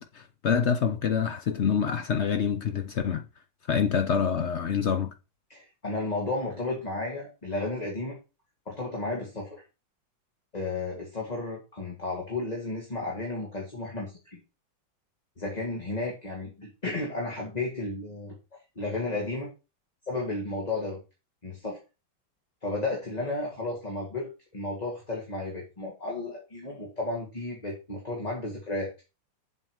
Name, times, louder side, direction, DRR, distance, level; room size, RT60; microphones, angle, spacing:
voice 1, 0.0-3.2 3.7-5.1, left 7 dB, 70° left, 0.6 m, -26 dB
voice 2, 5.5-8.2 8.7-9.6 10.5-14.4 15.4-18.3 18.8-19.5 20.1-21.0 21.4-21.8 22.6-28.9, left 2 dB, 20° left, 2.1 m, -33 dB
7.7 x 7.6 x 4.8 m
omnidirectional pair, 2.1 m